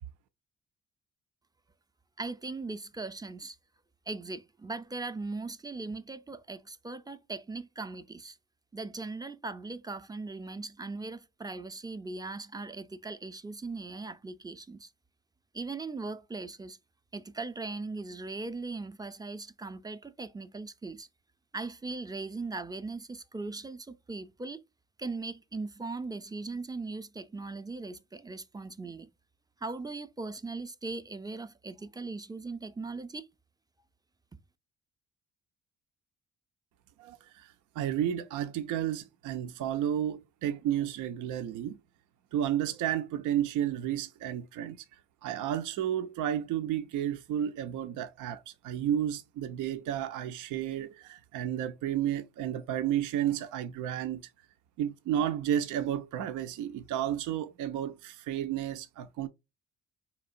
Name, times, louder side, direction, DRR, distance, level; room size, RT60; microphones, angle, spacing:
voice 1, 2.2-3.6 4.1-8.4 8.7-14.9 15.5-16.8 17.1-21.1 21.5-24.6 25.0-29.1 29.6-33.3, right 3 dB, 15° right, 0.4 m, -39 dB
voice 2, 37.0-41.8 42.3-44.8 45.2-54.3 54.8-59.3, right 10 dB, 85° right, 0.5 m, -32 dB
4.3 x 2.9 x 2.5 m
cardioid pair, 90°, 30 cm